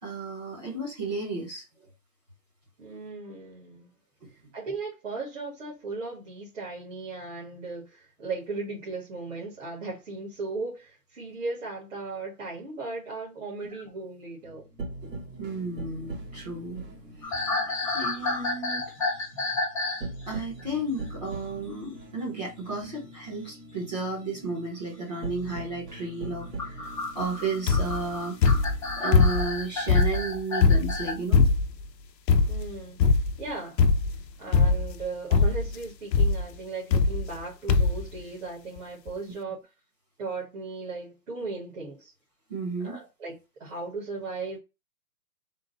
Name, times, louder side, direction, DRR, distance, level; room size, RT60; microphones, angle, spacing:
voice 1, 0.0-1.9 4.2-4.3 13.7-13.8 15.0-16.8 17.2-17.5 17.9-18.9 20.3-28.4 29.0-31.5 42.5-43.0, right 3 dB, 25° right, 1.0 m, -33 dB
voice 2, 2.8-3.9 4.5-14.7 32.5-33.8 34.4-39.6 40.2-42.1 42.8-44.6, right 3 dB, 50° right, 1.6 m, -37 dB
sound 1, 14.4-30.1, right 2 dB, 80° right, 1.8 m, -42 dB
sound 2, 17.2-20.1 20.3-20.6 22.8-23.0 24.3-24.4 26.3-31.1, left 2 dB, 20° left, 0.7 m, -31 dB
sound 3, 27.7-28.0 28.4-29.6 29.9-31.8 32.3-32.7 33.0-33.4 33.8-34.2 34.5-35.0 35.3-35.7 36.1-36.4 36.9-37.4 37.7-38.1 38.8-38.9 39.1-39.2, left 4 dB, 85° left, 0.7 m, -21 dB
3.8 x 2.3 x 4.0 m
hypercardioid pair, 175°, 49 cm